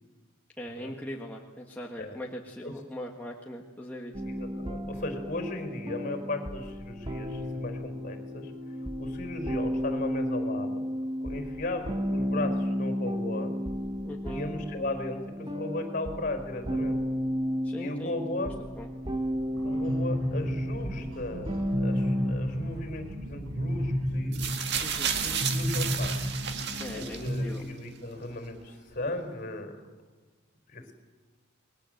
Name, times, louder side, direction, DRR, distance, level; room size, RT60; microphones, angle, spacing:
voice 1, 0.6-4.1 14.0-14.4 17.6-18.2 18.4-18.9 24.8-25.1 26.8-27.6, equal, 10° left, -2 dB, 1.6 m, -40 dB
sound 1, 4.1-22.3, equal, 20° right, 1.5 m, -33 dB
voice 2, 4.2-8.5 9.0-10.8 11.2-13.5 14.3-17.0 17.8-18.5 19.6-24.4 25.2-26.3 26.9-29.7 30.7-30.9, left 2 dB, 40° left, 7 dB, 4.7 m, -36 dB
sound 2, 19.5-27.5, equal, 80° right, 4.3 m, -32 dB
sound 3, 24.3-27.6 28.5-28.6, right 7 dB, 55° right, 1.9 m, -32 dB
28.5 x 21.0 x 7.9 m, 1.3 s
head